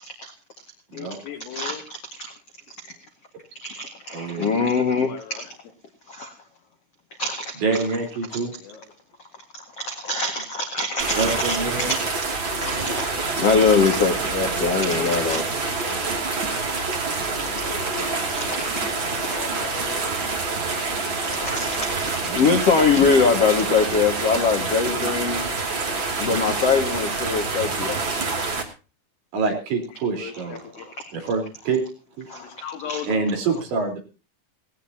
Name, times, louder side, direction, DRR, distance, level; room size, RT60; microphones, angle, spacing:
voice 1, 0.9-1.9 4.5-5.5 8.6-8.9 12.6-13.1 14.8-16.2 17.5-18.8 19.1-20.4 27.6-28.1 29.9-31.0 32.3-33.7, left 8 dB, 75° left, 3 dB, 5.3 m, -39 dB
voice 2, 3.6-5.1 6.1-6.3 7.2-7.5 9.8-11.6 11.9-12.0 12.6-12.7 13.4-15.4 15.8-15.9 17.5-18.0 18.4-18.6 19.1-19.4 21.2-25.5 26.2-28.0 32.3-32.4, left 4 dB, 55° left, 4 dB, 1.7 m, -22 dB
voice 3, 4.1-4.6 7.6-8.5 11.2-12.0 22.2-22.4 29.3-30.6 31.1-31.9 32.2-32.3 33.1-34.0, right 4 dB, 60° right, 3 dB, 6.3 m, -26 dB
sound 1, 11.0-28.6, right 3 dB, 30° right, 2.4 m, -27 dB
19.0 x 16.0 x 2.9 m, 0.33 s
omnidirectional pair, 5.9 m